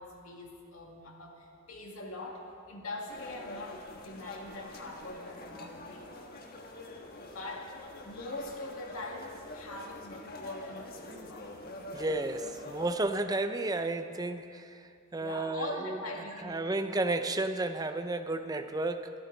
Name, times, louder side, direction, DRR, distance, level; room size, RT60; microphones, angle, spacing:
voice 1, 0.0-6.1 7.3-7.8 8.0-11.5 15.2-16.8, left 2 dB, 85° left, 0 dB, 2.2 m, -42 dB
sound 1, 3.1-13.0, left 2 dB, 45° left, 1.4 m, -46 dB
voice 2, 11.9-14.8 15.1-16.0 16.4-19.1, right 2 dB, 20° right, 8 dB, 0.6 m, -32 dB
22.5 x 13.5 x 4.0 m, 2.4 s
head